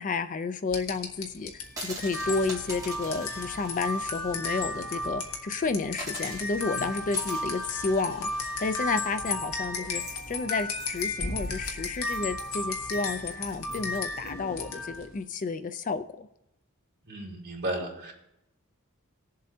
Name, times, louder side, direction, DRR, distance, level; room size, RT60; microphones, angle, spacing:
voice 1, 0.0-8.3 8.6-16.3, left 4 dB, 35° left, 11 dB, 0.4 m, -31 dB
sound 1, 0.7-15.1, left 2 dB, 75° left, 1.5 m, -34 dB
sound 2, 1.6-5.1 5.4-5.5 5.9-14.3, right 3 dB, 15° right, 3.2 m, -45 dB
voice 2, 17.1-18.1, right 1 dB, 50° right, -3 dB, 3.3 m, -34 dB
19.0 x 7.5 x 2.8 m, 0.84 s
head